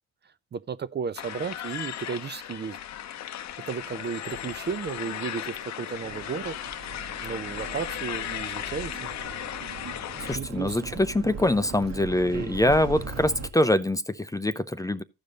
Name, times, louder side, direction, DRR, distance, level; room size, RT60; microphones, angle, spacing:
voice 1, 0.5-2.8 3.7-6.5 7.2-9.1 10.3-11.0 12.3-12.7, right 6 dB, 35° right, 0.5 m, -34 dB
sound 1, 1.2-10.4, left 11 dB, 65° left, 0.7 m, -36 dB
sound 2, 6.0-13.5, right 5 dB, 60° right, 1.4 m, -40 dB
voice 2, 10.2-15.0, left 1 dB, 10° left, 0.5 m, -24 dB
14.5 x 5.1 x 3.9 m
cardioid pair, 90°, 30 cm